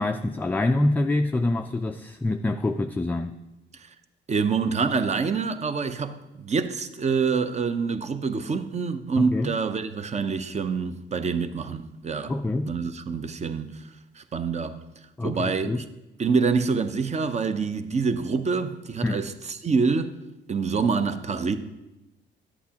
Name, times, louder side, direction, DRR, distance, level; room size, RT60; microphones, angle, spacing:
voice 1, 0.0-3.4 9.2-9.5 12.3-12.7 15.2-15.8 19.0-19.2, left 2 dB, 10° left, 0.3 m, -25 dB
voice 2, 4.3-12.3 12.6-13.8 14.2-14.8 15.2-15.8 16.2-20.2 20.5-21.6, right 5 dB, 35° right, 0.6 m, -26 dB
11.0 x 8.2 x 2.9 m
cardioid pair, 90°, 20 cm